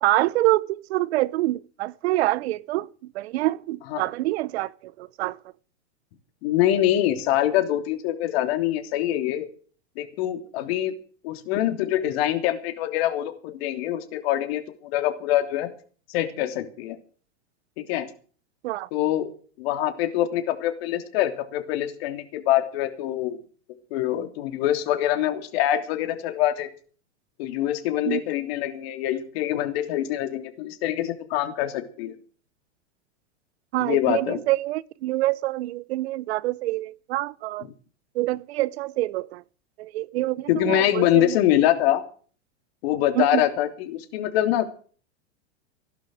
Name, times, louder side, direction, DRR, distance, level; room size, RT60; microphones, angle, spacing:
voice 1, 0.0-2.9 3.1-4.7 5.0-5.4 18.6-18.9 28.1-28.2 33.7-37.7 38.2-39.4 39.8-41.3 43.2-43.4, right 17 dB, 60° right, 0.8 m, -26 dB
voice 2, 6.4-9.5 10.0-10.9 11.2-15.7 16.1-17.0 17.8-18.1 18.9-19.3 19.6-23.4 23.9-26.7 27.4-32.1 33.8-34.4 37.6-37.7 40.5-42.0 42.8-44.7, left 12 dB, 55° left, 3.2 m, -24 dB
16.5 x 11.5 x 6.3 m
hypercardioid pair, 120°, 36 cm